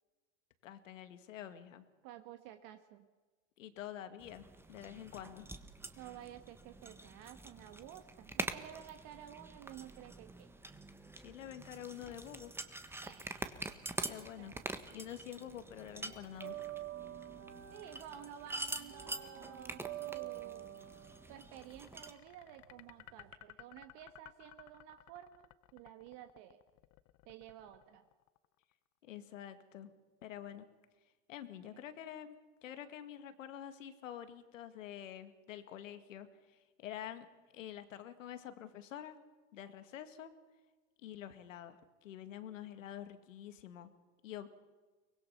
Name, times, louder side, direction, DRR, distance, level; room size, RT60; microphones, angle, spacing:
voice 1, 0.6-1.9 3.6-5.5 11.2-12.5 14.0-14.5 14.9-16.6 29.0-29.9 30.2-30.6 31.3-37.3 37.5-39.2 39.5-40.3 41.0-43.9 44.2-44.5, left 10 dB, 85° left, 10 dB, 2.1 m, -47 dB
voice 2, 2.0-3.1 5.9-10.5 13.0-13.5 14.4-14.6 17.7-20.7 21.3-26.6 27.2-28.0 31.6-31.8, right 11 dB, 55° right, 7 dB, 1.4 m, -52 dB
sound 1, 4.2-22.1, right 2 dB, 5° right, 1.4 m, -46 dB
sound 2, 14.2-15.2 15.4-23.3, right 13 dB, 90° right, 2.4 m, -48 dB
sound 3, 21.6-28.7, left 18 dB, 45° left, 0.8 m, -58 dB
24.0 x 20.0 x 5.8 m, 1.3 s
hypercardioid pair, 110°, 38 cm